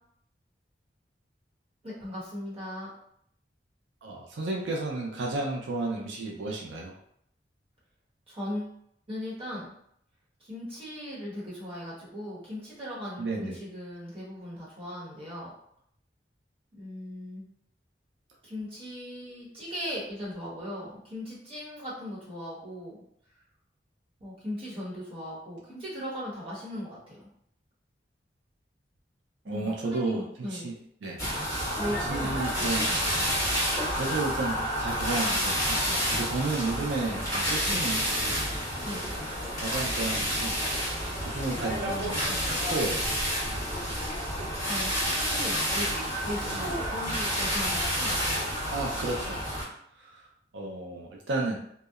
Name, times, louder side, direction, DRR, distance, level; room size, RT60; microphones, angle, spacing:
voice 1, 1.8-2.9 8.3-8.8 9.1-9.7 10.4-15.5 16.7-17.4 18.4-23.0 24.2-27.3 29.4-30.7 31.7-33.0 37.6-38.0 38.8-39.1 44.7-48.1, equal, 30° right, -7 dB, 0.9 m, -38 dB
voice 2, 4.0-6.9 13.2-13.5 29.5-30.8 31.0-31.2 31.9-32.9 33.2-33.6 33.9-38.4 39.6-40.6 40.8-43.0 46.4-46.7 48.7-49.4 50.0-50.2 50.5-51.6, right 3 dB, 85° right, -1 dB, 0.4 m, -33 dB
sound 1, 31.2-49.6, equal, 20° left, 1.2 m, -29 dB
2.7 x 2.0 x 2.3 m, 0.69 s
head